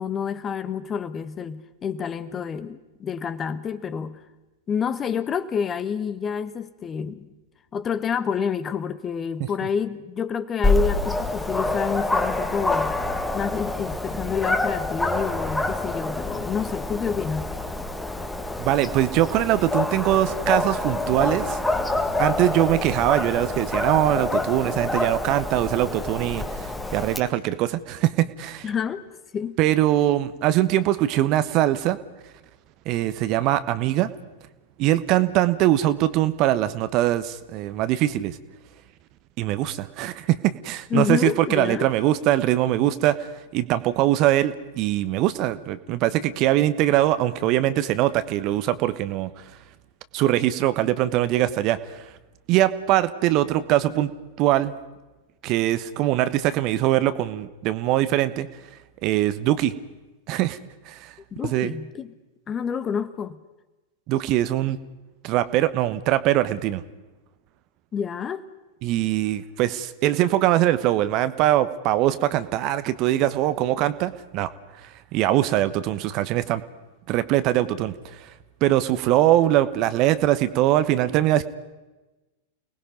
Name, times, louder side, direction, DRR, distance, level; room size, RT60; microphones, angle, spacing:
voice 1, 0.0-4.2 4.7-7.3 7.7-13.0 13.3-17.5 28.6-29.0 29.3-29.6 40.9-41.9 61.3-62.1 62.5-63.4 67.9-68.4, left 7 dB, 25° left, 1.3 m, -28 dB
Dog, 10.6-27.2, left 2 dB, 5° left, 1.7 m, -27 dB
voice 2, 18.6-21.6 22.2-28.7 29.6-32.0 32.8-34.1 34.8-38.4 39.4-49.3 50.1-52.1 52.5-54.1 54.4-54.7 55.4-58.5 59.0-59.7 60.3-60.6 60.9-61.1 61.4-61.7 64.1-64.8 65.2-66.8 68.8-74.5 74.8-76.6 77.1-78.3 78.6-81.4, right 14 dB, 40° right, 1.1 m, -22 dB
29.5 x 19.5 x 5.3 m
figure-of-eight pair, 95°, 0 cm